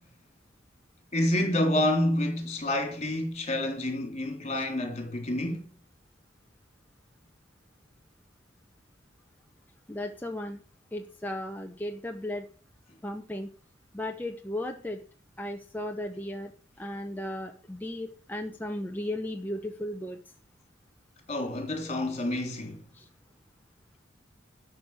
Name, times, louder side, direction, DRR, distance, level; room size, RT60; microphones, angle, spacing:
voice 1, 1.1-5.7 21.3-22.8, left 1 dB, 35° left, 3.5 m, -28 dB
voice 2, 9.9-10.6 10.9-12.5 13.0-13.5 13.9-15.0 15.4-16.5 16.8-20.2 22.0-22.1 22.9-23.1, left 1 dB, 10° left, 1.0 m, -35 dB
12.5 x 6.4 x 7.4 m
head